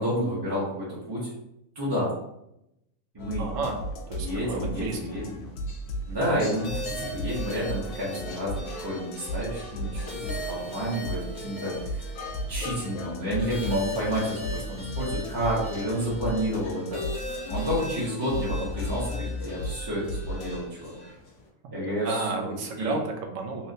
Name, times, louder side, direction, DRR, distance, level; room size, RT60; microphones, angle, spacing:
voice 1, 0.0-1.3 1.7-2.1 3.1-3.5 4.2-5.4 6.1-12.0 12.5-17.0 17.5-20.9 21.7-22.4 22.8-22.9, equal, 25° right, -8 dB, 0.7 m, -30 dB
sound 1, 3.2-20.7, equal, 85° left, 1.1 m, -35 dB
voice 2, 3.4-3.8 4.1-5.0 6.1-6.2 21.6-21.7 22.0-23.7, right 4 dB, 70° right, 2 dB, 0.9 m, -32 dB
sound 2, 4.3-21.5, left 3 dB, 60° left, 1.0 m, -48 dB
sound 3, 6.6-21.1, left 2 dB, 30° left, 0.4 m, -40 dB
3.2 x 2.9 x 2.7 m, 0.83 s
omnidirectional pair, 1.5 m